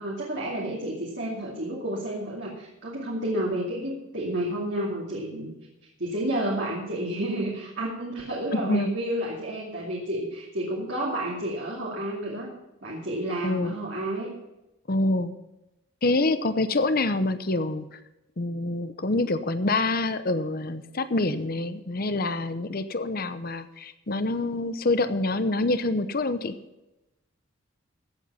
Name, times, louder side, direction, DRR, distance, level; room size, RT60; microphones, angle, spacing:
voice 1, 0.0-5.5 6.0-12.5 12.8-14.3, right 1 dB, 65° right, -4 dB, 2.6 m, -30 dB
voice 2, 8.5-8.9 13.4-13.7 14.9-15.3 16.0-17.9 18.4-26.5, left 2 dB, 50° left, 11 dB, 0.8 m, -26 dB
15.0 x 8.1 x 5.7 m, 0.95 s
head